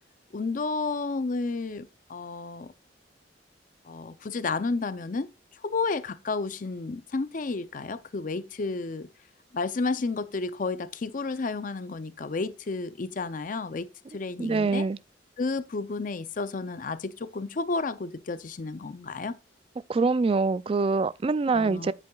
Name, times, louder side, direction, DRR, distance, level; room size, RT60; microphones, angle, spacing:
voice 1, 0.3-2.7 3.9-9.1 9.5-14.9 15.4-19.4 21.5-21.9, left 3 dB, 45° left, 0.5 m, -31 dB
voice 2, 14.4-15.0 19.9-21.9, right 4 dB, 30° right, 0.3 m, -24 dB
9.5 x 8.3 x 2.3 m
head